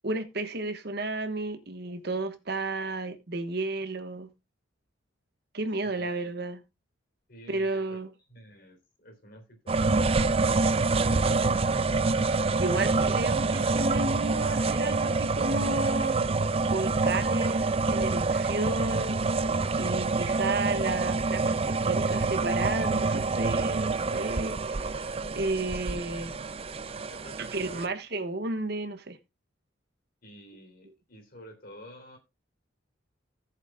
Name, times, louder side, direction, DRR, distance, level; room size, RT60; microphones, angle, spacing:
voice 1, 0.0-4.3 5.5-6.6 7.5-8.1 12.5-16.2 16.6-19.1 19.8-26.3 27.4-29.2, right 2 dB, 55° right, 1.3 m, -32 dB
voice 2, 5.8-6.2 7.3-8.0 8.3-11.4 27.1-27.9 30.2-32.2, equal, 50° left, 3.5 m, -51 dB
sound 1, 9.7-27.9, right 3 dB, 30° right, 0.5 m, -27 dB
17.5 x 7.4 x 2.3 m
head